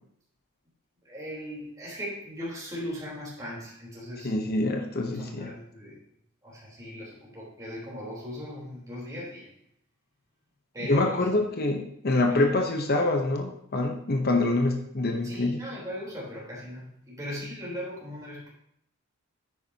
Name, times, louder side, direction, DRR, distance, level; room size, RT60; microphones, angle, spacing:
voice 1, 1.0-4.3 5.0-6.0 6.4-9.5 10.7-11.2 12.3-12.5 15.2-18.5, equal, 15° right, -7 dB, 3.8 m, -38 dB
voice 2, 4.2-5.5 10.9-15.6, left 2 dB, 45° left, 4 dB, 0.9 m, -25 dB
9.8 x 9.4 x 2.9 m, 0.71 s
head